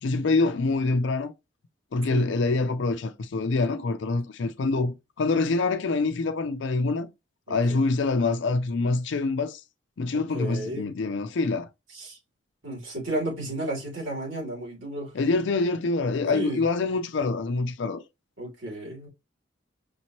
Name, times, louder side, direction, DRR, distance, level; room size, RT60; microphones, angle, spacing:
voice 1, 0.0-1.3 1.9-7.1 7.5-9.6 10.0-11.7 15.1-18.0, left 3 dB, 70° left, 0.4 m, -25 dB
voice 2, 7.5-7.8 10.1-10.9 11.9-12.2 12.6-15.1 16.3-16.6 18.4-19.1, right 1 dB, 85° right, 2.8 m, -33 dB
5.2 x 3.0 x 2.8 m
head